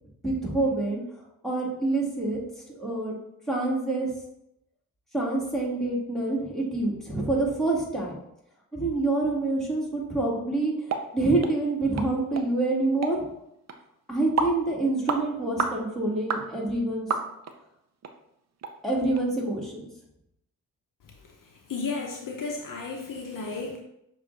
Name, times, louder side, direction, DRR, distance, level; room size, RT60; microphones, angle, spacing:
voice 1, 0.2-1.0 1.4-2.4 2.8-3.2 3.5-4.1 5.1-8.1 8.7-13.2 14.1-17.1 18.8-19.9, right 2 dB, ahead, -4 dB, 1.8 m, -27 dB
sound 1, 10.9-11.1 11.4-11.5 12.0-12.1 12.4-12.5 13.0-13.2 13.7-13.8 14.4-14.6 15.1-15.2 15.6-15.8 16.3-16.5 17.1-17.5 18.0-18.1 18.6-18.7 19.2-19.3, right 5 dB, 45° right, 0.6 m, -28 dB
voice 2, 21.7-23.8, left 4 dB, 60° left, 1 dB, 0.7 m, -33 dB
6.4 x 2.6 x 3.1 m, 0.82 s
supercardioid pair, 50°, 37 cm